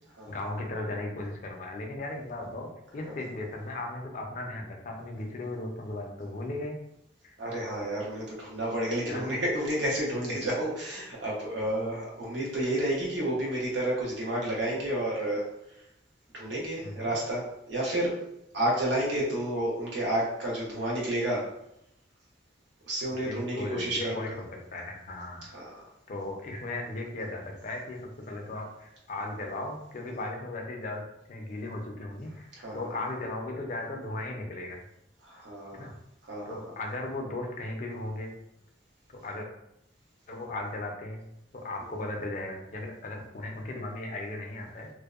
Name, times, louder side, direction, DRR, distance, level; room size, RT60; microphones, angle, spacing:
voice 1, 0.3-6.8 7.2-7.3 9.1-9.2 9.9-10.1 16.8-17.1 23.1-24.4 24.7-25.5 26.1-28.0 28.3-31.0 31.3-32.3 32.7-34.8 35.7-35.9 36.5-38.3 39.1-39.5 40.3-41.2 41.5-44.9, left 2 dB, 45° left, 1 dB, 0.4 m, -36 dB
voice 2, 7.4-15.4 16.3-18.1 18.5-21.5 22.9-24.4 25.5-25.7 32.6-32.8 35.2-35.9 36.3-36.6, right 1 dB, 75° right, -4 dB, 0.8 m, -30 dB
2.6 x 2.0 x 2.3 m, 0.81 s
head